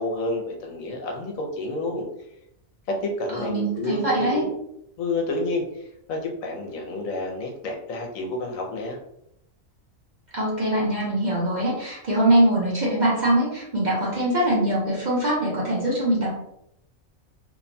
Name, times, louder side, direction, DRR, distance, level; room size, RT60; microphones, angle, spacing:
voice 1, 0.0-2.1 2.9-4.5 5.0-9.0, left 2 dB, 80° left, 1 dB, 1.0 m, -29 dB
voice 2, 3.4-4.4 10.3-16.3, right 1 dB, 40° right, -6 dB, 0.8 m, -22 dB
2.8 x 2.2 x 2.6 m, 0.77 s
omnidirectional pair, 1.4 m